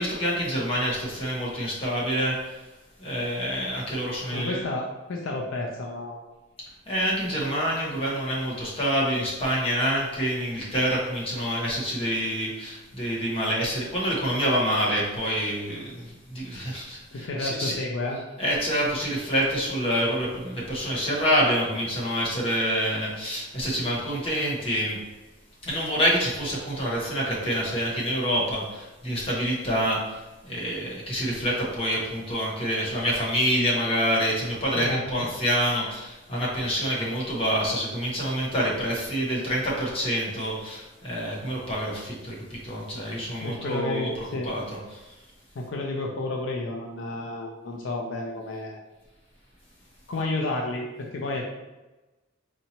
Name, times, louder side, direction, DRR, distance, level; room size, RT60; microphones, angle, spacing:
voice 1, 0.0-2.6 3.0-4.6 6.9-17.8 18.4-25.0 25.6-44.1 44.4-45.1, equal, 30° left, -5 dB, 1.0 m, -27 dB
voice 2, 4.3-6.2 17.1-18.2 34.7-35.3 42.9-43.1 43.4-44.5 45.6-48.8 50.1-51.5, left 2 dB, 65° left, 0 dB, 0.5 m, -31 dB
4.4 x 2.8 x 2.8 m, 1.1 s
head